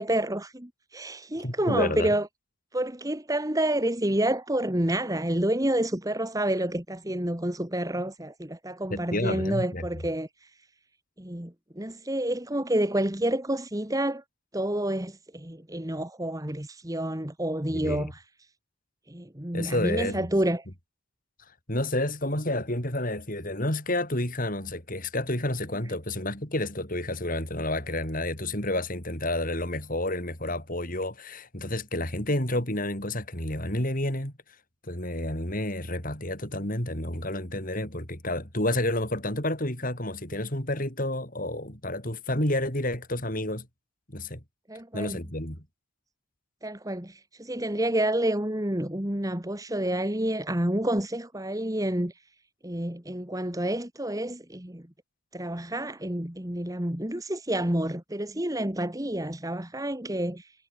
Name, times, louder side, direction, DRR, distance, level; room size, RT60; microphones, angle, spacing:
voice 1, 0.0-2.3 2.7-10.5 11.2-14.2 14.5-18.2 19.1-20.6 44.7-45.2 46.6-52.1 52.6-54.8 55.3-60.5, right 1 dB, 15° right, 1.8 m, -29 dB
voice 2, 1.3-2.1 8.9-10.0 17.8-18.1 19.5-20.3 21.7-34.3 34.9-43.7 44.1-44.4 44.9-45.6, left 1 dB, 40° left, 6.6 m, -30 dB
head